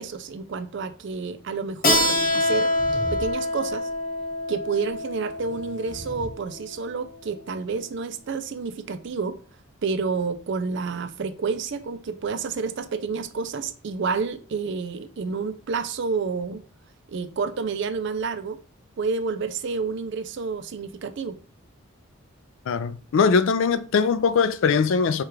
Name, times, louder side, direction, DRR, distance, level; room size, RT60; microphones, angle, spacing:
voice 1, 0.0-2.7 3.1-3.9 4.5-9.4 9.8-16.6 17.1-18.6 19.0-21.4, right 5 dB, 55° right, 0.4 m, -29 dB
Keyboard (musical), 1.8-7.1, left 1 dB, 40° left, 1.1 m, -26 dB
sound 1, 2.2-3.3 3.7-4.0 5.3-6.3, right 1 dB, 20° right, 0.8 m, -39 dB
voice 2, 22.7-25.2, left 5 dB, 60° left, 0.3 m, -21 dB
4.6 x 2.4 x 4.7 m
head